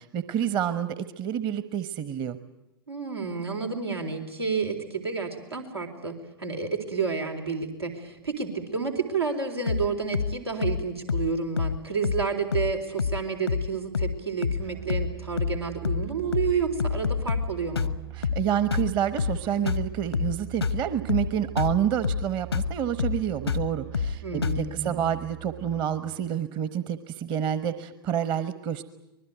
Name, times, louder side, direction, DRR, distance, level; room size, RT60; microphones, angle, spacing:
voice 1, 0.0-2.4 18.2-28.8, right 9 dB, 35° right, 13 dB, 1.2 m, -28 dB
voice 2, 2.9-17.9 24.2-25.1, right 5 dB, 90° right, 0 dB, 4.0 m, -30 dB
sound 1, 9.7-9.9 10.1-10.3 10.6-10.8 11.1-11.3 11.6-11.8 12.0-12.3 12.5-12.7 13.0-13.2 13.5-13.7 13.9-14.2 14.4-14.6 14.9-15.1 15.4-15.6 15.8-16.1 16.3-16.5 16.8-17.5 17.7-18.0 18.2-18.4 18.7-18.9 19.2-19.4 19.7-19.9 20.1-20.3 20.6-20.8 21.1-21.3 21.6-21.8 22.0-22.3 22.5-22.7 23.0-23.2 23.5-23.7 23.9-24.2 24.4-24.6, left 6 dB, 85° left, 0.9 m, -27 dB
Musical instrument, 14.6-26.3, right 18 dB, 55° right, 4.4 m, -42 dB
25.0 x 20.5 x 9.2 m, 0.91 s
figure-of-eight pair, 95°, 13 cm